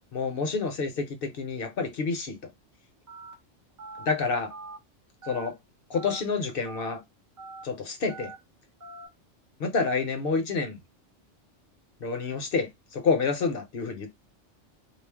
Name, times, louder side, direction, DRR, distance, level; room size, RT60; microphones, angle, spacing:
voice 1, 0.1-2.4 4.1-4.5 5.2-5.5 5.9-7.0 7.6-8.3 9.6-10.8 12.0-14.1, left 4 dB, 60° left, 0.7 m, -28 dB
Telephone, 3.1-3.3 3.8-4.0 4.5-4.8 5.2-5.5 5.9-6.2 6.6-6.9 7.4-7.6 8.1-8.4 8.8-9.1, right 3 dB, 20° right, 0.5 m, -42 dB
2.4 x 2.0 x 3.3 m
omnidirectional pair, 1.2 m